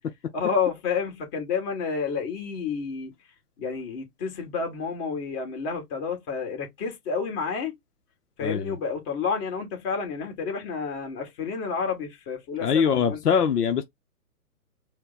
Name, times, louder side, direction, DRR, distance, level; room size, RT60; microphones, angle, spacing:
voice 1, 0.3-3.1 3.6-7.7 8.4-13.2, left 5 dB, 35° left, 2.0 m, -30 dB
voice 2, 8.4-8.8 12.6-13.8, left 7 dB, 80° left, 0.8 m, -23 dB
4.3 x 2.3 x 4.0 m
hypercardioid pair, 135°, 46 cm